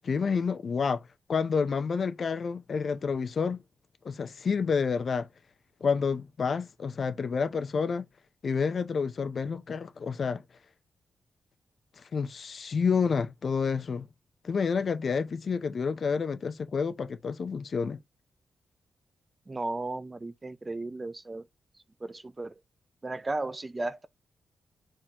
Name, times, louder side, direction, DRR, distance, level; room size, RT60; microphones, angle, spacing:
voice 1, 0.0-1.0 1.3-3.6 4.0-5.3 5.8-8.1 8.4-10.4 12.1-14.1 14.4-18.0, left 5 dB, 55° left, 0.6 m, -29 dB
voice 2, 19.5-21.4 22.0-22.5 23.0-24.1, right 2 dB, 25° right, 0.4 m, -35 dB
4.3 x 3.7 x 2.9 m
cardioid pair, 90°, 0 cm